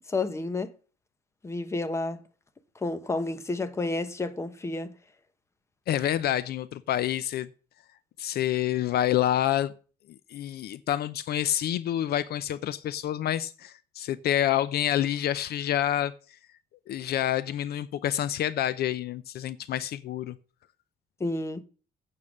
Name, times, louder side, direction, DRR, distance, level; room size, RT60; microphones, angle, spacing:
voice 1, 0.1-0.7 1.4-2.2 2.8-4.9 21.2-21.6, left 2 dB, 15° left, 0.9 m, -30 dB
voice 2, 5.9-7.5 8.2-9.7 10.3-16.1 16.9-20.4, left 11 dB, 60° left, 0.6 m, -28 dB
8.6 x 6.7 x 7.3 m
cardioid pair, 140°, 18 cm